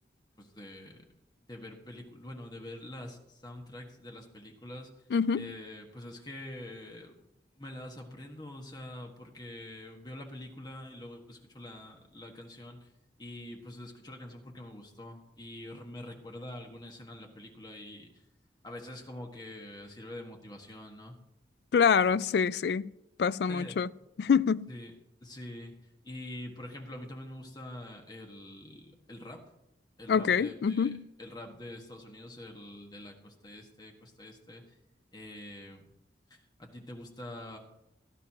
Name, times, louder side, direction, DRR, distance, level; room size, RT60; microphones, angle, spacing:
voice 1, 0.4-1.0 1.5-4.9 5.4-7.3 7.5-12.9 13.2-18.1 18.6-21.2 23.5-23.8 24.7-24.9 25.2-29.4 30.0-30.9 31.2-34.6 35.1-35.9 36.3-37.6, left 1 dB, 25° left, 1.6 m, -45 dB
voice 2, 5.1-5.5 21.7-22.9 23.2-23.9 24.2-24.7 30.1-31.0, left 6 dB, 60° left, 0.3 m, -26 dB
17.0 x 11.5 x 3.0 m
head